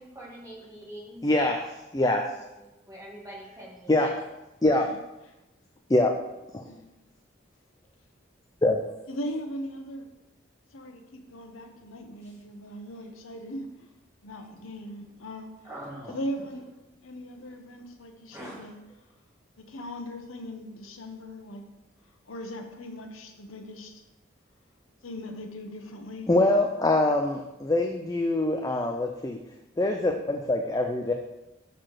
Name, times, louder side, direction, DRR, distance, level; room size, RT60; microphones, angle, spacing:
voice 1, 0.0-1.6 2.6-4.1 12.2-12.3 15.6-16.2 18.3-18.7, right 1 dB, 15° right, -5 dB, 1.9 m, -44 dB
voice 2, 1.2-1.6 1.9-2.3 3.9-4.2 4.6-4.9 5.9-6.1 6.5-6.6 8.6-8.8 26.3-29.4 29.8-31.1, left 2 dB, 20° left, 3 dB, 0.4 m, -24 dB
voice 3, 9.1-10.1 10.7-13.9 14.2-15.5 16.1-16.6 17.0-18.8 19.6-21.6 22.3-24.0 25.0-26.5, equal, 90° left, 5 dB, 0.9 m, -39 dB
6.4 x 4.0 x 6.3 m, 1.0 s
head